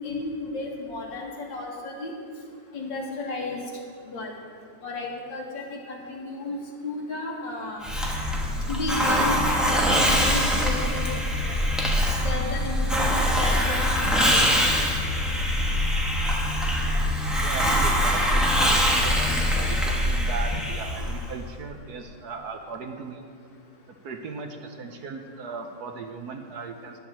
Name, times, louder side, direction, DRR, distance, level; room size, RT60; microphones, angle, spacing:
voice 1, 0.0-2.1 2.7-3.6 4.0-4.3 4.8-6.6 6.8-7.9 8.7-11.5 12.2-14.5, left 2 dB, 75° left, -1 dB, 2.4 m, -33 dB
Hiss, 7.8-21.3, equal, ahead, 1.0 m, -23 dB
voice 2, 17.4-23.3 24.0-27.0, right 4 dB, 65° right, 5 dB, 1.2 m, -38 dB
10.5 x 7.0 x 7.4 m, 2.1 s
omnidirectional pair, 2.0 m